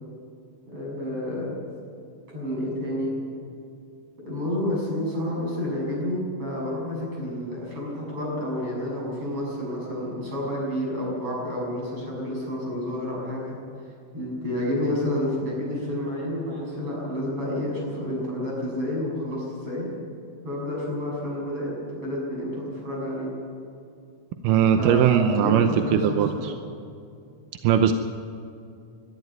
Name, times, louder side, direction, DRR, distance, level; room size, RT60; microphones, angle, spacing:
voice 1, 0.7-1.6 2.3-3.2 4.2-13.6 14.1-19.9 20.4-23.3 24.8-26.5, left 1 dB, 40° right, -3 dB, 8.0 m, -29 dB
voice 2, 24.4-26.5 27.6-27.9, right 9 dB, 85° right, 7 dB, 2.4 m, -20 dB
22.5 x 12.5 x 9.6 m, 2.5 s
omnidirectional pair, 3.8 m